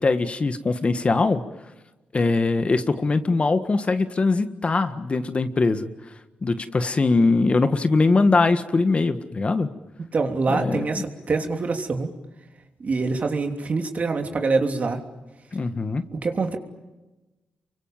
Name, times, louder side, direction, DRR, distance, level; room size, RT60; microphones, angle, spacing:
voice 1, 0.0-1.4 2.1-5.9 6.4-9.7 10.5-10.9 15.5-16.0, left 3 dB, 40° left, 10 dB, 1.6 m, -21 dB
voice 2, 10.1-12.1 12.8-15.0 16.1-16.6, right 4 dB, 50° right, 4 dB, 3.2 m, -25 dB
29.0 x 24.0 x 7.5 m, 1.1 s
cardioid pair, 60°, 3 cm